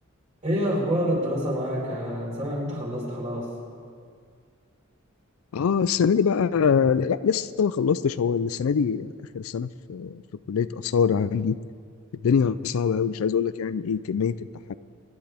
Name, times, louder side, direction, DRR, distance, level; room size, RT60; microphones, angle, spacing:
voice 1, 0.4-3.4, equal, 35° right, -5 dB, 4.5 m, -27 dB
voice 2, 5.5-10.2 10.5-11.6 12.2-14.3 14.7-14.8, left 6 dB, 85° left, 15 dB, 0.4 m, -24 dB
25.0 x 11.0 x 3.5 m, 2.1 s
head